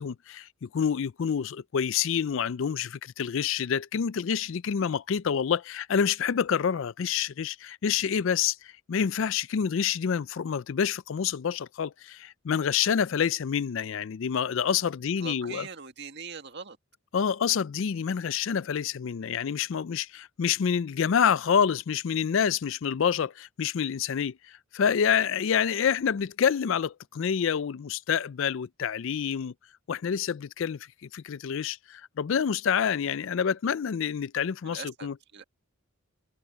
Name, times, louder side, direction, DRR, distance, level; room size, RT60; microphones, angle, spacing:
voice 1, 0.0-15.7 17.1-29.5 29.9-35.1, left 7 dB, 60° left, 0.4 m, -27 dB
voice 2, 15.2-16.8 34.6-35.4, right 5 dB, 50° right, 1.8 m, -42 dB
head